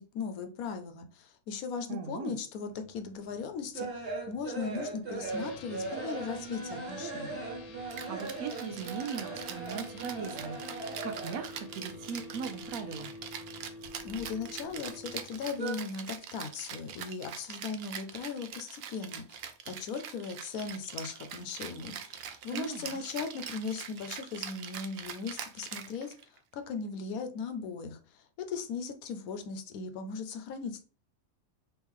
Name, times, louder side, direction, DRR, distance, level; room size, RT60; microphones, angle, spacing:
voice 1, 0.0-7.4 14.0-26.1 26.5-30.8, left 5 dB, 85° left, 7 dB, 1.1 m, -38 dB
voice 2, 1.9-2.3 8.1-13.1 22.5-23.0, right 5 dB, 90° right, 7 dB, 1.2 m, -39 dB
sound 1, 2.9-11.7 11.9-13.1 13.4-14.8 15.1-15.7, right 3 dB, 50° right, 1.4 m, -39 dB
sound 2, 5.2-15.2, left 2 dB, 50° left, 0.4 m, -47 dB
Rattle (instrument), 7.9-26.4, right 8 dB, 65° right, 0.6 m, -43 dB
3.2 x 3.1 x 3.6 m, 0.38 s
omnidirectional pair, 1.5 m